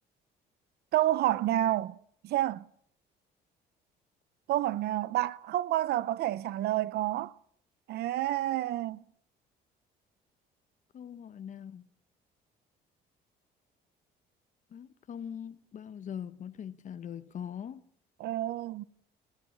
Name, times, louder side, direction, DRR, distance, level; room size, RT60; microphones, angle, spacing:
voice 1, 0.9-2.0 2.2-2.6 4.5-7.3 7.9-9.0 18.2-18.8, right 14 dB, 70° right, 0.8 m, -29 dB
voice 2, 10.9-11.8 14.7-17.8, left 8 dB, 45° left, 1.2 m, -41 dB
19.5 x 15.5 x 8.7 m
cardioid pair, 110°, 17 cm